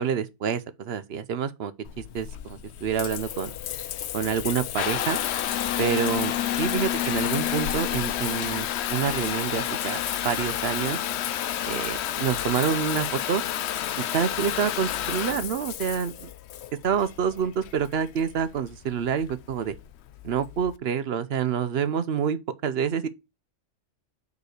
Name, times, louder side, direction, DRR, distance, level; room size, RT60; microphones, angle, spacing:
voice 1, 0.0-3.5 4.1-5.2 5.8-6.3 6.6-11.0 11.6-13.4 14.0-16.3 16.8-19.7 20.2-22.4 22.6-23.1, right 7 dB, 60° right, 0.9 m, -27 dB
Water tap faucet / Bathtub (filling or washing) / Trickle dribble, 1.8-20.7, left 11 dB, 70° left, 0.8 m, -30 dB
5.3 x 5.2 x 6.4 m
omnidirectional pair, 1.2 m